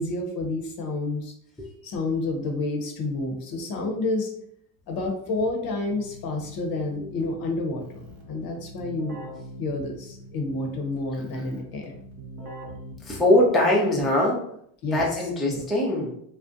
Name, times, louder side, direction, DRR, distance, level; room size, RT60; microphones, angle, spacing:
voice 1, 0.0-1.3 1.8-4.3 4.9-9.2 9.6-12.0 14.8-15.0 15.5-15.6, left 2 dB, 50° left, 2 dB, 0.7 m, -29 dB
Keyboard (musical), 5.4-13.7, equal, 45° right, 0.9 m, -44 dB
voice 2, 13.1-14.5 14.9-16.1, left 1 dB, ahead, -3 dB, 0.5 m, -22 dB
2.4 x 2.1 x 2.5 m, 0.68 s
supercardioid pair, 85°, 46 cm